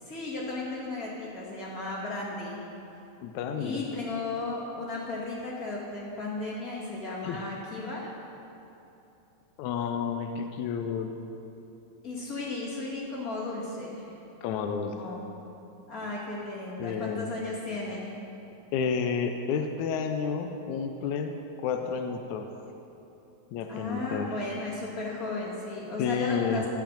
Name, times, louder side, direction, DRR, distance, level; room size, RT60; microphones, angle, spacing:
voice 1, 0.0-2.6 3.5-8.1 12.0-14.1 14.8-15.3 15.9-18.1 23.7-26.6, left 2 dB, 30° left, -5 dB, 2.3 m, -35 dB
voice 2, 3.2-3.8 7.2-7.5 9.6-11.2 14.4-15.0 16.8-17.3 18.7-21.4 21.6-22.5 23.5-24.4 26.0-26.7, left 6 dB, 80° left, 5 dB, 1.9 m, -30 dB
14.5 x 5.8 x 7.4 m, 2.9 s
omnidirectional pair, 3.4 m